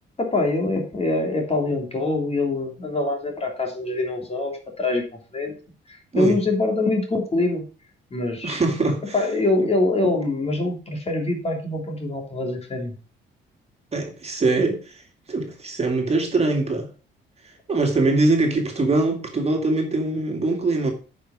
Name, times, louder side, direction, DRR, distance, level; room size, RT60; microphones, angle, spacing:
voice 1, 0.2-5.5 5.9-7.6 8.1-8.6 9.1-12.9, left 2 dB, 30° left, 3.1 m, -24 dB
voice 2, 8.4-9.2 9.6-9.7 13.9-15.0 15.3-16.9 17.7-20.9, right 2 dB, 30° right, 2.4 m, -22 dB
9.1 x 5.7 x 4.9 m
cardioid pair, 90°, 20 cm